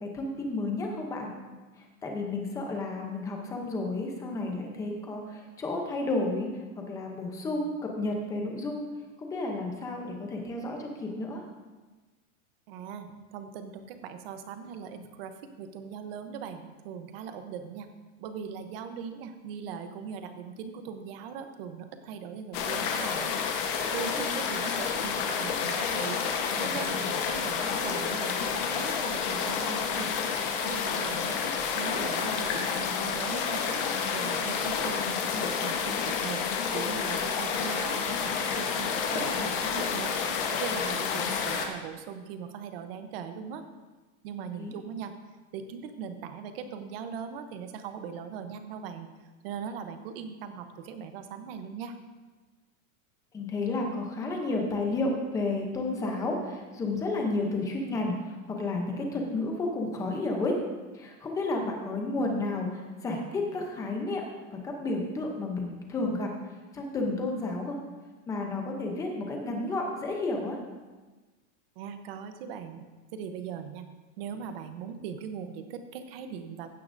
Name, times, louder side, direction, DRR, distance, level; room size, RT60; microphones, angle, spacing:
voice 1, 0.0-1.3 1.8-6.5 6.8-8.8 9.2-11.4 24.1-24.2 44.6-44.7 53.3-60.6 60.9-64.2 64.5-66.3 66.7-67.8 68.3-70.6, left 2 dB, 10° left, 1 dB, 0.6 m, -31 dB
voice 2, 12.7-17.9 18.2-23.3 23.9-30.1 30.6-31.4 31.7-33.8 34.1-36.4 36.7-40.1 40.5-43.6 44.2-45.1 45.5-49.1 49.4-52.0 71.8-72.8 73.1-73.9 74.2-76.7, right 7 dB, 45° right, 8 dB, 0.8 m, -40 dB
sound 1, 22.5-41.7, left 6 dB, 40° left, 1.1 m, -29 dB
15.5 x 9.4 x 2.6 m, 1.2 s
supercardioid pair, 180°, 42 cm